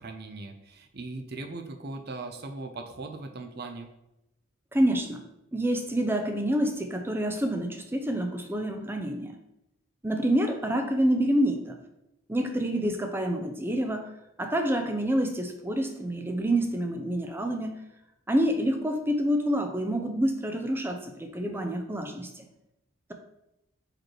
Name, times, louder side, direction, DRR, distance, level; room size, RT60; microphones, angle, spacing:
voice 1, 0.0-3.9, right 3 dB, 50° right, 5 dB, 0.7 m, -39 dB
voice 2, 4.7-5.2 5.5-9.4 10.0-11.8 12.3-14.0 14.4-17.8 18.3-22.4, right 1 dB, 10° right, 5 dB, 0.6 m, -27 dB
5.1 x 4.7 x 4.4 m, 0.88 s
head